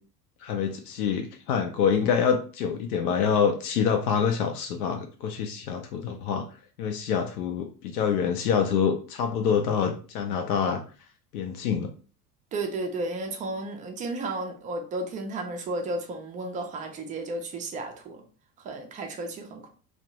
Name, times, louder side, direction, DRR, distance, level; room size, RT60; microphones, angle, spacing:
voice 1, 0.4-6.5 6.8-10.8 11.3-11.9, left 7 dB, 70° left, 4 dB, 0.5 m, -26 dB
voice 2, 12.5-18.2 18.6-19.7, right 2 dB, 20° right, 4 dB, 0.4 m, -33 dB
2.5 x 2.1 x 2.8 m, 0.38 s
figure-of-eight pair, 75°, 46 cm